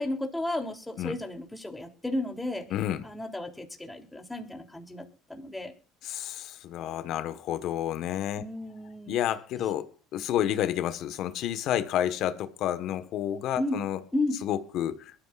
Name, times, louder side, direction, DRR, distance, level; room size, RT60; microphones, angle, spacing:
voice 1, 0.0-2.7 3.0-5.7 8.4-9.1 13.6-13.8 14.1-14.4, left 1 dB, 10° left, 3.1 m, -33 dB
voice 2, 2.7-3.0 6.0-8.4 9.1-14.0 14.4-15.1, left 11 dB, 60° left, 1.3 m, -30 dB
22.0 x 13.5 x 2.5 m
supercardioid pair, 95°, 0 cm